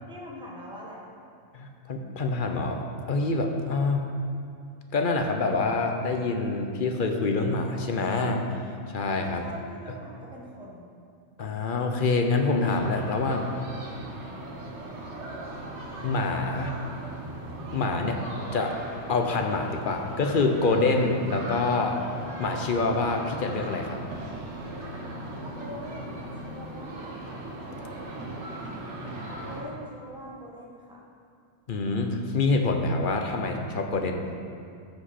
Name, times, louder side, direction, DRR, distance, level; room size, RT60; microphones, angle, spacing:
voice 1, 0.1-1.1 9.4-10.9 16.5-16.8 25.5-27.3 29.4-31.1, equal, 5° right, -4 dB, 1.1 m, -43 dB
voice 2, 1.5-4.0 4.9-9.4 11.4-13.5 16.0-16.7 17.7-18.2 18.5-18.7 19.1-22.0 22.4-24.0 31.7-34.2, left 3 dB, 50° left, 3 dB, 0.8 m, -26 dB
sound 1, 12.7-29.6, right 2 dB, 80° right, 1.4 m, -38 dB
13.0 x 5.1 x 4.2 m, 2.4 s
omnidirectional pair, 1.2 m